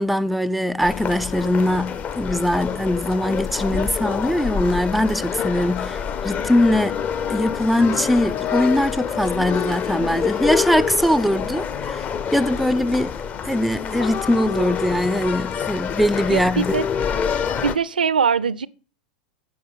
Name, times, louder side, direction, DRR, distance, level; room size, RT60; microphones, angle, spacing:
voice 1, 0.0-7.0 7.3-12.0 12.3-13.2 13.4-16.7, left 1 dB, ahead, 0.4 m, -21 dB
sound 1, 0.8-17.8, left 7 dB, 30° left, 0.7 m, -27 dB
voice 2, 16.3-16.8 17.6-18.7, right 6 dB, 85° right, 0.4 m, -21 dB
9.5 x 5.1 x 5.5 m
hypercardioid pair, 95°, 5 cm